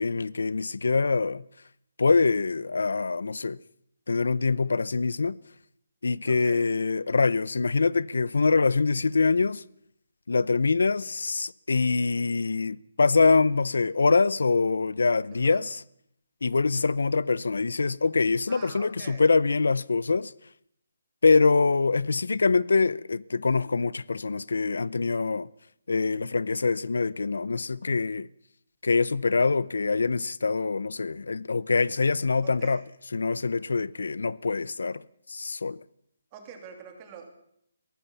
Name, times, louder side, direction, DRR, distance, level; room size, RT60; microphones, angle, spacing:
voice 1, 0.0-1.4 2.0-3.6 4.1-5.4 6.0-9.6 10.3-15.8 16.4-20.3 21.2-25.5 25.9-28.3 28.8-32.8 33.1-35.0 35.3-35.8, left 4 dB, 90° left, 0.7 m, -24 dB
voice 2, 6.2-6.8 15.3-15.7 18.5-19.2 32.4-32.8 36.3-37.3, right 6 dB, 15° right, 2.9 m, -45 dB
22.0 x 17.5 x 7.1 m
hypercardioid pair, 175°, 0 cm